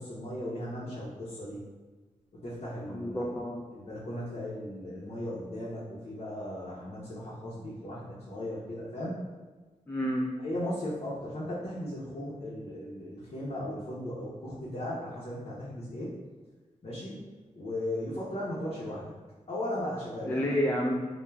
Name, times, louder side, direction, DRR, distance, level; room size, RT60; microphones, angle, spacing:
voice 1, 0.0-1.6 2.4-3.3 3.7-9.1 10.4-16.1 16.8-17.2 17.6-19.1 19.5-20.6, left 1 dB, 60° left, -8 dB, 0.7 m, -37 dB
voice 2, 2.9-3.7 9.9-10.3 20.2-21.1, equal, 15° left, -2 dB, 0.3 m, -29 dB
3.2 x 2.2 x 2.2 m, 1.3 s
cardioid pair, 55°, 13 cm